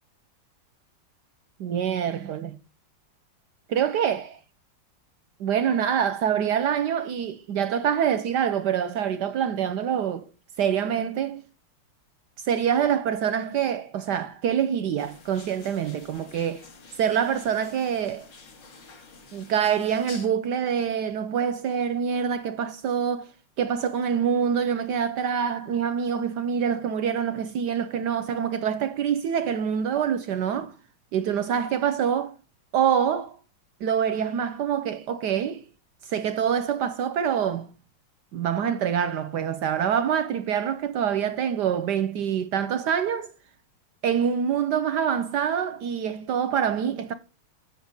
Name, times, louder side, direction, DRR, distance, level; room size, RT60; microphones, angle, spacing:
voice 1, 1.6-2.6 3.7-4.4 5.4-10.3 10.6-11.4 12.4-16.6 17.0-18.3 19.3-23.3 23.6-30.7 31.1-32.3 32.7-33.4 33.8-35.7 36.0-37.7 38.3-43.3 44.0-47.1, right 8 dB, 70° right, 1.0 m, -25 dB
sound 1, 15.0-20.3, left 4 dB, 60° left, 2.6 m, -48 dB
8.8 x 5.9 x 5.2 m
omnidirectional pair, 2.3 m